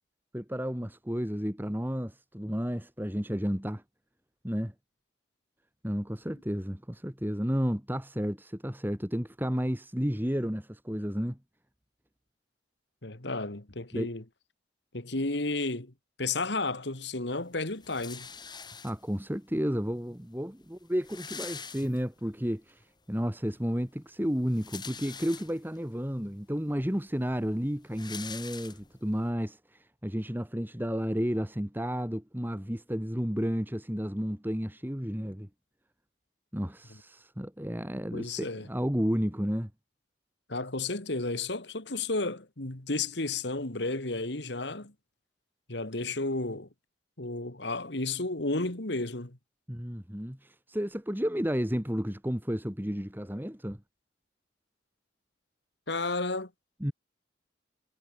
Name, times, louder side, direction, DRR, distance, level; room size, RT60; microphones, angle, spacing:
voice 1, 0.3-3.8 4.4-4.7 5.8-11.4 13.9-14.1 18.8-35.5 36.5-39.7 49.7-53.8 56.8-56.9, equal, 10° right, 2.1 m, -32 dB
voice 2, 13.0-14.2 14.9-15.9 16.2-18.3 38.1-38.7 40.5-44.9 45.7-46.7 47.2-49.4 55.9-56.5, left 3 dB, 65° left, 2.2 m, -32 dB
sound 1, 17.8-19.3 20.1-20.2 20.4-20.5 20.8-22.4 22.8-22.9 24.3-25.8 26.4-26.5 26.8-29.2, left 6 dB, 25° left, 3.5 m, -44 dB
head